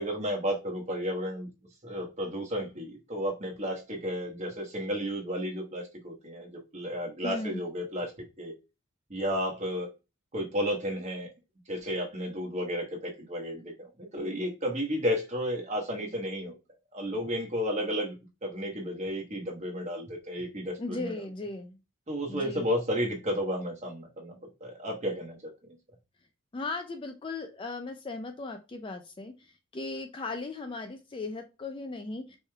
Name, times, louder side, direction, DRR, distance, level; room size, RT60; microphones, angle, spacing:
voice 1, 0.0-1.5 1.8-8.1 8.4-8.5 9.1-9.9 10.3-11.3 11.7-13.9 14.1-16.6 16.9-18.1 18.4-21.1 22.1-25.5, equal, 35° right, 1 dB, 1.1 m, -32 dB
voice 2, 7.2-7.6 20.8-21.8 22.3-22.7 26.5-29.4 29.7-32.4, left 3 dB, 25° left, 6 dB, 0.4 m, -37 dB
4.6 x 3.2 x 2.3 m, 0.27 s
head